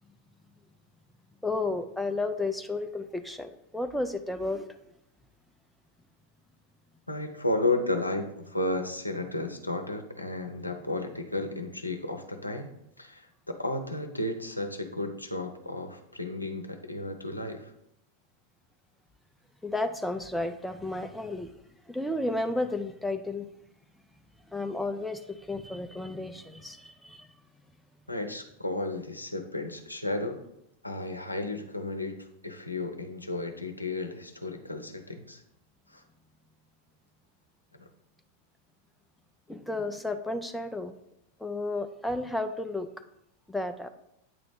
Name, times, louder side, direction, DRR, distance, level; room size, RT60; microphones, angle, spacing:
voice 1, 1.4-4.7 19.6-21.5 21.9-23.5 24.5-27.3 39.5-40.9 41.4-42.9 43.5-43.9, left 2 dB, 5° left, 7 dB, 0.4 m, -32 dB
voice 2, 7.1-12.7 13.0-17.7 28.1-30.4 30.8-35.4 35.9-36.0 37.8-37.9, left 2 dB, 85° left, 5 dB, 0.6 m, -33 dB
8.7 x 3.0 x 5.0 m, 0.78 s
figure-of-eight pair, 90°, 0 cm